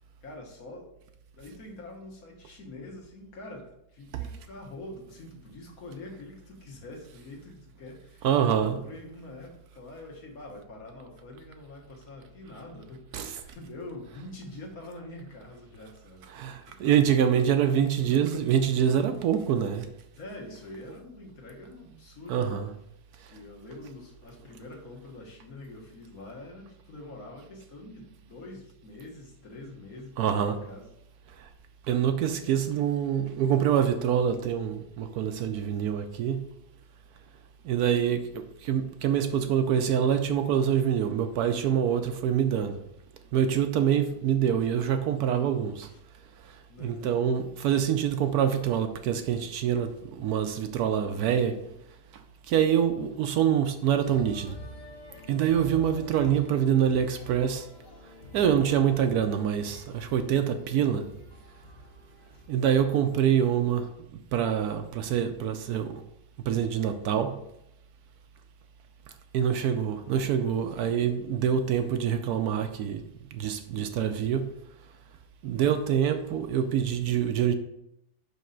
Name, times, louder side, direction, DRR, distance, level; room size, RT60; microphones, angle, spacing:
voice 1, 0.2-0.9 1.4-16.2 16.7-16.9 20.1-22.5 23.3-30.9 45.9-46.0 46.7-47.1 56.0-56.4 62.3-62.4 75.5-75.9, left 2 dB, 60° left, -1 dB, 1.6 m, -45 dB
voice 2, 8.2-8.8 13.1-13.3 16.3-19.9 22.3-22.7 23.2-23.3 30.2-30.6 31.4-31.5 31.9-36.4 37.6-42.8 43.3-45.9 46.4-51.6 52.1-54.6 55.3-57.7 58.3-61.0 62.5-66.0 66.5-67.3 69.3-73.0 73.3-74.5 75.4-77.5, right 8 dB, 75° right, 8 dB, 1.0 m, -25 dB
sound 1, 54.0-63.0, left 1 dB, 45° left, 0.6 m, -47 dB
5.4 x 5.4 x 3.8 m, 0.81 s
omnidirectional pair, 1.8 m